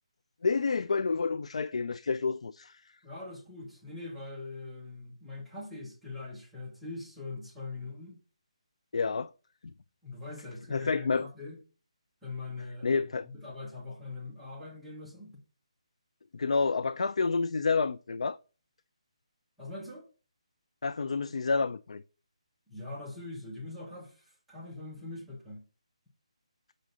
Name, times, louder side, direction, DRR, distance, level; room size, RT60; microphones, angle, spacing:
voice 1, 0.4-2.8 8.9-9.3 9.6-9.7 10.7-11.3 12.8-13.3 16.3-18.4 20.8-22.0, left 4 dB, 70° left, 0.4 m, -29 dB
voice 2, 3.0-8.2 10.0-11.6 12.2-15.4 19.6-20.0 22.7-25.6, left 3 dB, ahead, 1.2 m, -42 dB
6.6 x 6.1 x 3.9 m
hypercardioid pair, 175°, 4 cm